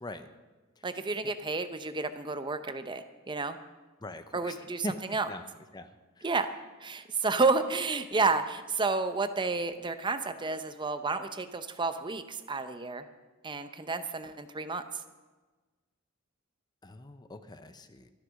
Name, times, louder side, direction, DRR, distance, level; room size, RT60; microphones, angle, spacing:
voice 1, 0.8-3.6 4.3-5.3 6.2-6.5 6.8-13.0 13.4-15.0, right 3 dB, 20° right, 10 dB, 0.7 m, -31 dB
voice 2, 4.0-4.9 5.3-5.4 5.7-5.9 6.2-6.3 16.8-18.1, left 2 dB, 20° left, 10 dB, 0.7 m, -42 dB
13.0 x 11.5 x 6.3 m, 1.3 s
head